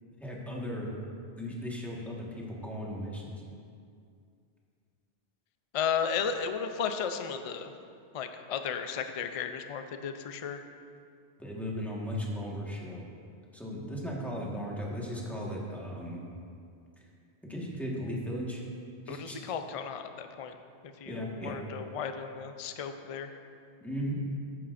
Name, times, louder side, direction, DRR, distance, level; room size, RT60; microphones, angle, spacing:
voice 1, 0.2-0.9 1.4-3.3 11.4-13.0 13.5-16.2 17.4-18.6 19.1-19.4 21.0-21.6 23.8-24.2, equal, ahead, -4 dB, 1.4 m, -36 dB
voice 2, 5.7-7.7 8.1-10.6 19.1-20.6 21.0-23.3, left 7 dB, 50° left, 7 dB, 0.4 m, -34 dB
12.5 x 9.6 x 2.5 m, 2.4 s
omnidirectional pair, 1.1 m